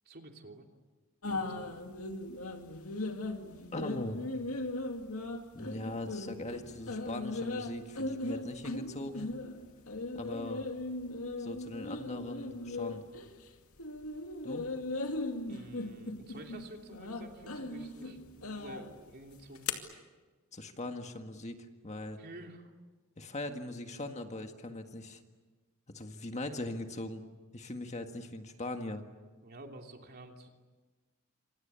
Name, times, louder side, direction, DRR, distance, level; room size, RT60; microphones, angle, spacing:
voice 1, 0.0-0.7 1.3-1.8 15.5-19.7 22.2-22.7 29.4-30.5, right 1 dB, 50° right, 3 dB, 3.1 m, -50 dB
sound 1, 1.2-13.5 13.8-19.7, left 2 dB, 90° left, 2.4 m, -38 dB
voice 2, 3.7-4.2 5.5-9.3 10.2-10.7 11.4-13.0 14.4-14.6 20.5-21.6 21.8-22.2 23.2-25.2 25.9-27.2 27.5-29.0, left 1 dB, 35° left, 6 dB, 1.8 m, -40 dB
28.5 x 26.5 x 7.1 m, 1.3 s
head